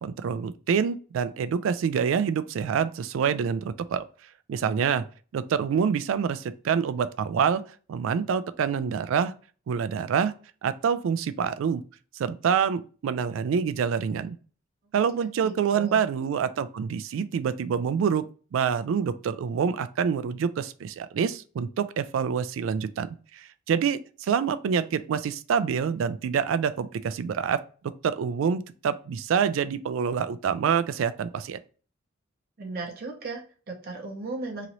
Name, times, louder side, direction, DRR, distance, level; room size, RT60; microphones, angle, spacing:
voice 1, 0.0-4.0 4.5-5.1 5.3-7.6 7.9-9.3 9.7-10.3 10.6-11.8 12.2-14.4 14.9-18.2 18.5-27.6 28.0-31.6, right 7 dB, 75° right, 0.3 m, -26 dB
voice 2, 15.4-16.0 32.6-34.7, right 3 dB, 50° right, 0.7 m, -36 dB
3.0 x 2.6 x 2.8 m
head